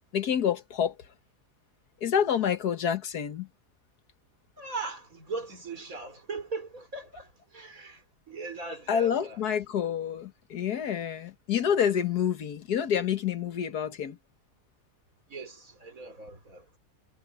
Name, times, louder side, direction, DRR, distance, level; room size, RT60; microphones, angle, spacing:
voice 1, 0.1-1.0 2.0-3.5 8.9-14.2, left 8 dB, 85° left, 1.8 m, -28 dB
voice 2, 4.6-9.4 15.3-16.6, right 3 dB, 60° right, 4.7 m, -39 dB
omnidirectional pair, 1.6 m